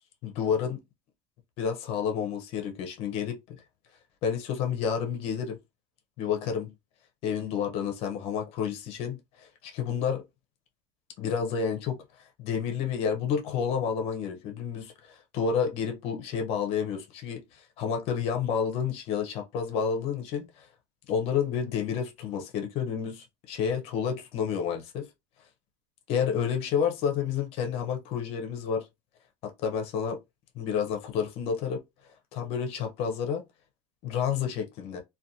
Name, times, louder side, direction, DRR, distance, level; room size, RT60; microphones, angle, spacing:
voice 1, 0.2-0.8 1.6-3.6 4.2-5.6 6.2-6.7 7.2-10.2 11.2-12.0 12.4-20.7 21.1-25.1 26.1-28.9 29.4-30.2 30.5-31.8 32.3-33.4 34.0-35.0, left 7 dB, 45° left, 0.6 m, -30 dB
2.4 x 2.2 x 2.7 m
cardioid pair, 165°, 15 cm